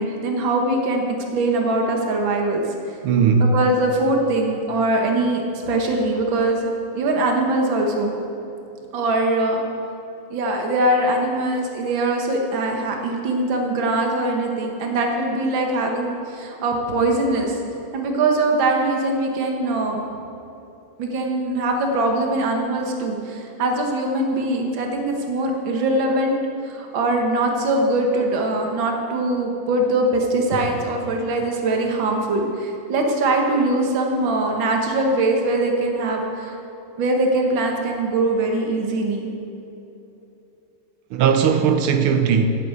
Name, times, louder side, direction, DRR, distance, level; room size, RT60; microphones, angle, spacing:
voice 1, 0.0-2.6 3.4-6.6 6.9-8.1 8.9-9.6 10.3-17.6 17.9-20.0 21.0-26.4 26.7-36.6 37.0-39.3, right 2 dB, 65° right, 2.1 m, -22 dB
voice 2, 3.0-3.5 41.1-42.5, right 6 dB, 80° right, 1.6 m, -18 dB
10.0 x 8.4 x 8.3 m
omnidirectional pair, 2.4 m